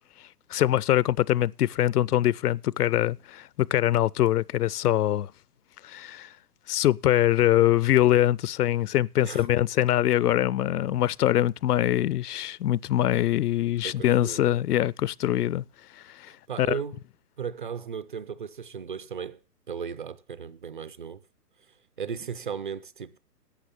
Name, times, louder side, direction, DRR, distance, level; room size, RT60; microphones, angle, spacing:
voice 1, 0.5-5.3 5.8-6.3 6.7-15.6 16.2-16.3 16.6-16.8, left 13 dB, 70° left, 0.5 m, -23 dB
voice 2, 13.8-14.6 16.3-17.0 17.4-19.4 19.7-21.2 22.0-23.2, right 7 dB, 35° right, 0.5 m, -36 dB
11.5 x 7.8 x 6.8 m
hypercardioid pair, 150°, 48 cm